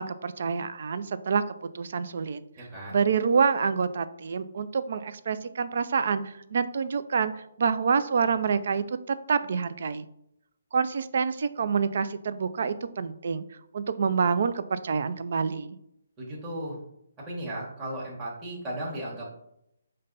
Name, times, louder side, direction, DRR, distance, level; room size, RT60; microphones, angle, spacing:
voice 1, 0.0-1.4 1.7-2.4 2.9-10.1 10.7-13.4 13.7-15.8, right 5 dB, 55° right, 13 dB, 0.3 m, -27 dB
voice 2, 2.6-3.0 16.2-16.8 17.3-19.4, right 1 dB, 15° right, -7 dB, 1.1 m, -35 dB
5.1 x 2.2 x 3.9 m, 0.78 s
hypercardioid pair, 150°, 0 cm